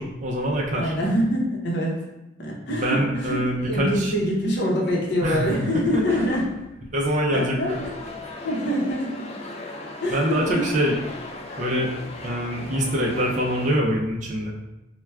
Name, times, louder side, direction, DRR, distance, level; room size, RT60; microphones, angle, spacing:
voice 1, 0.0-0.9 2.7-4.1 5.2-6.0 6.9-7.8 10.1-10.9 11.6-11.9 12.2-14.5, equal, 40° right, -1 dB, 0.4 m, -24 dB
voice 2, 0.7-1.9 2.4-6.4 7.3-7.7 8.4-9.1 10.0-10.7, equal, 60° left, -2 dB, 0.7 m, -25 dB
sound 1, 4.7-9.4 9.7-11.7, right 1 dB, 10° left, 0.7 m, -46 dB
sound 2, 7.7-13.7, left 2 dB, 35° left, 0.3 m, -37 dB
4.4 x 2.2 x 2.2 m, 0.95 s
head